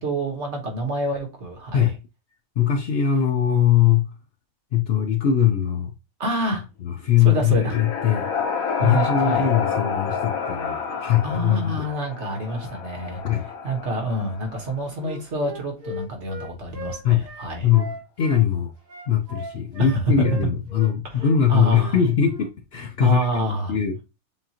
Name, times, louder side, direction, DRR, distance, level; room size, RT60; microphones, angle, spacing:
voice 1, 0.0-1.9 6.2-6.6 7.2-7.8 8.8-9.5 11.2-17.7 19.8-20.5 21.0-22.0 23.0-23.7, right 2 dB, 55° right, 1.5 m, -27 dB
voice 2, 2.6-4.1 4.7-5.9 6.8-8.3 8.8-11.9 13.2-13.5 17.0-17.3 17.6-17.9 18.2-18.7 19.1-23.3 23.7-24.0, left 9 dB, 60° left, 0.7 m, -21 dB
sound 1, 7.0-14.9, left 6 dB, 85° left, 1.3 m, -29 dB
Wind instrument woodwind instrument, 15.0-18.4 18.9-20.9 21.2-21.4 21.7-21.9 22.2-22.5, left 2 dB, 85° right, 2.2 m, -38 dB
7.2 x 2.5 x 2.8 m
omnidirectional pair, 1.4 m